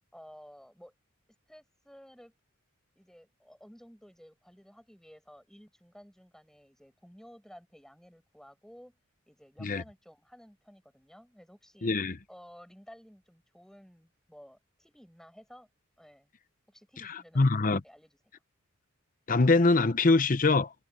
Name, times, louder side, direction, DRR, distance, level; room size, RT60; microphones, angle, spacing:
voice 1, 0.1-0.9 1.5-2.3 2.9-9.0 9.3-11.9 12.3-15.7 16.0-16.3 16.7-17.5 17.8-18.2, equal, ahead, 5.0 m, -54 dB
voice 2, 11.8-12.2 17.0-17.8 19.3-20.7, left 3 dB, 40° left, 0.8 m, -24 dB
head